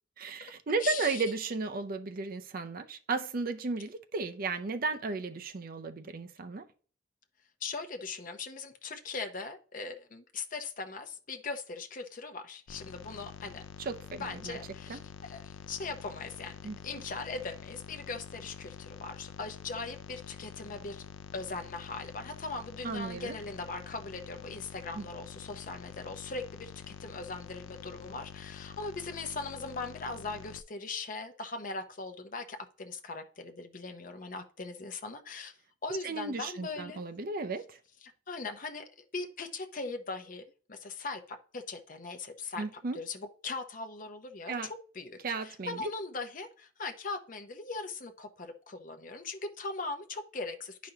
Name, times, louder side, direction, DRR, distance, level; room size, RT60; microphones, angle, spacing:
voice 1, 0.2-6.7 13.8-14.6 14.9-15.0 16.6-16.8 22.8-23.3 24.9-25.1 36.0-37.8 42.6-43.0 44.5-44.7 45.2-45.9, right 3 dB, 45° right, 8 dB, 0.5 m, -34 dB
voice 2, 0.8-1.2 7.6-13.6 14.2-16.5 16.8-21.0 21.3-35.5 35.8-37.0 38.3-40.4 40.7-42.6 42.9-50.9, left 3 dB, 45° left, 6 dB, 0.8 m, -40 dB
sound 1, 12.7-30.6, left 7 dB, 90° left, 0.4 m, -47 dB
10.0 x 5.1 x 2.9 m, 0.43 s
head